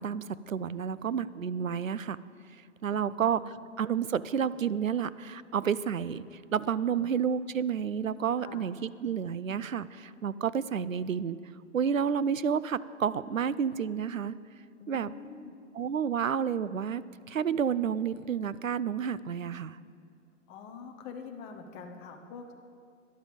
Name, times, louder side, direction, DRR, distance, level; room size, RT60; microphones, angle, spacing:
voice 1, 0.0-2.2 2.8-11.4 11.7-14.4 14.9-15.2 15.7-19.8, right 7 dB, 85° right, 17 dB, 0.6 m, -30 dB
voice 2, 3.0-3.6 7.0-7.1 8.4-8.7 14.8-15.6 20.5-22.5, left 5 dB, 15° left, 4 dB, 0.6 m, -45 dB
13.0 x 11.0 x 5.1 m, 2.2 s
figure-of-eight pair, 125°, 39 cm